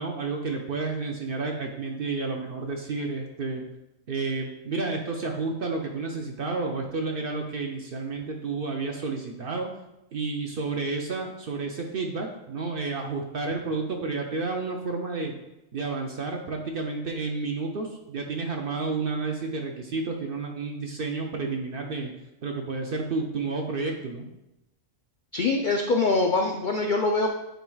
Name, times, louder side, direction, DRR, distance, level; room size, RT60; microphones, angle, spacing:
voice 1, 0.0-3.7 4.1-9.7 10.1-15.3 15.7-22.1 22.4-24.3, right 3 dB, 55° right, 2 dB, 0.6 m, -31 dB
voice 2, 25.3-27.3, left 3 dB, 65° left, 2 dB, 0.5 m, -24 dB
9.1 x 4.5 x 2.3 m, 0.91 s
omnidirectional pair, 1.4 m